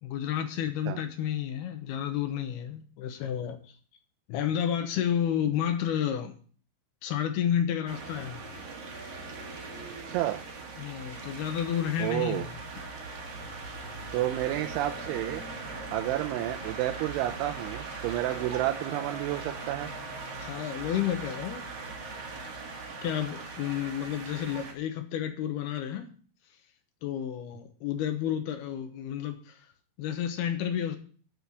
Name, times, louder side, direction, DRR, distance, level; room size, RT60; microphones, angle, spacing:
voice 1, 0.0-3.7 4.3-6.4 7.0-8.4 10.8-12.5 20.4-21.7 23.0-26.1 27.0-29.7 30.0-31.0, left 9 dB, 70° left, 6 dB, 2.7 m, -31 dB
sound 1, 7.9-24.7, right 3 dB, 55° right, 1.8 m, -40 dB
voice 2, 10.1-10.4 12.0-12.5 14.1-15.4 15.9-19.9, right 14 dB, 85° right, 5 dB, 3.1 m, -30 dB
12.0 x 4.6 x 8.2 m, 0.43 s
omnidirectional pair, 5.4 m